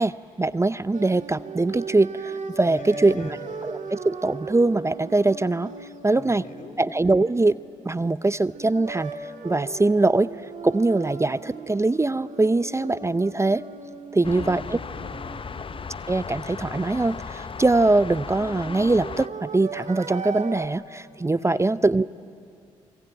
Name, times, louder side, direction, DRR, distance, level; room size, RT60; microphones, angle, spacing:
voice 1, 0.0-3.4 3.6-5.7 6.0-6.4 6.8-7.6 7.9-10.3 10.6-13.6 14.1-14.8 16.1-22.1, right 2 dB, 20° right, 16 dB, 0.6 m, -22 dB
sound 1, 0.9-8.0 8.5-16.3 18.0-20.7, right 5 dB, 60° right, 2.3 m, -38 dB
voice 2, 2.6-3.4 6.1-6.8 14.1-15.3 21.4-21.7, left 2 dB, 65° left, 4 dB, 3.0 m, -41 dB
sound 2, 14.2-19.3, left 5 dB, 40° left, 0.6 m, -36 dB
27.0 x 23.0 x 9.0 m, 2.3 s
hypercardioid pair, 40°, 14 cm